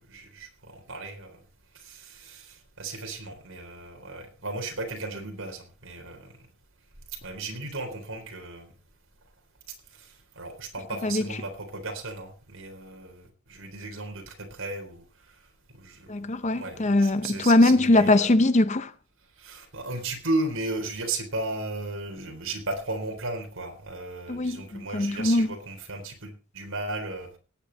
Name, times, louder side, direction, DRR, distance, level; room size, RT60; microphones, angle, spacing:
voice 1, 0.1-1.4 1.7-6.3 7.2-8.7 10.4-15.0 15.8-16.1 16.6-18.3 19.4-27.3, right 2 dB, 70° right, 3.9 m, -35 dB
voice 2, 16.1-18.9 24.3-25.5, left 2 dB, 35° left, 0.7 m, -21 dB
18.0 x 8.5 x 4.1 m
head